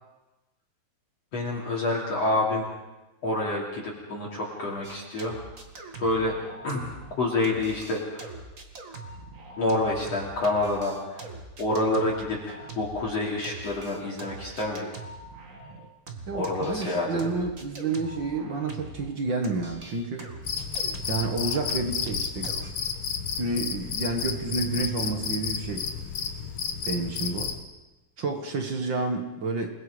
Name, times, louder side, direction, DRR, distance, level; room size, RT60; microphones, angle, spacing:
voice 1, 1.3-2.7 3.2-5.4 6.0-6.4 6.6-6.9 7.2-8.3 9.6-11.3 11.6-14.9 16.3-17.3, left 2 dB, 40° left, -2 dB, 3.7 m, -28 dB
sound 1, 4.8-7.2 7.4-19.1 19.4-22.7, right 3 dB, 35° right, 1.4 m, -42 dB
voice 2, 16.3-20.3 21.1-22.5 23.4-25.9 26.8-27.5 28.2-29.7, right 3 dB, 50° right, 4 dB, 1.4 m, -30 dB
Cricket, 20.4-27.6, left 6 dB, 65° left, 1.5 m, -32 dB
29.0 x 21.0 x 5.1 m, 1.0 s
omnidirectional pair, 4.7 m